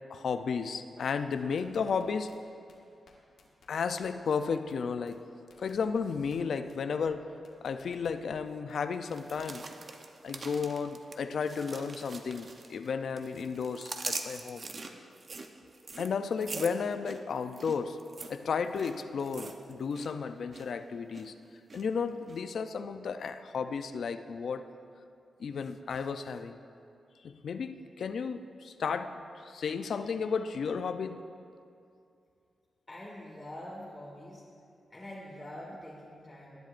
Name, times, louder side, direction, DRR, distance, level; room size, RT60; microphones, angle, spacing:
voice 1, 0.1-2.3 3.7-5.3 5.6-7.3 7.6-9.6 10.2-14.6 16.0-18.0 18.3-21.3 21.7-24.6 25.4-26.6 27.2-31.3, left 5 dB, 65° left, 9 dB, 0.5 m, -33 dB
sound 1, 1.1-2.4 2.7-2.8 3.1-3.2 3.4-4.4 4.7-4.8 5.1-5.2 5.5-6.4 6.7-6.8 7.1-7.2 7.4-8.4 8.7-9.0, left 4 dB, 80° left, 1.7 m, -59 dB
sound 2, 9.1-12.9 13.2-20.1 20.4-20.7 21.1-21.8 22.3-22.4, right 3 dB, 40° right, 0.7 m, -43 dB
voice 2, 32.9-34.4 34.9-36.6, left 1 dB, 15° left, -6 dB, 1.7 m, -45 dB
19.5 x 10.5 x 2.6 m, 2.5 s
wide cardioid pair, 130°, 0 cm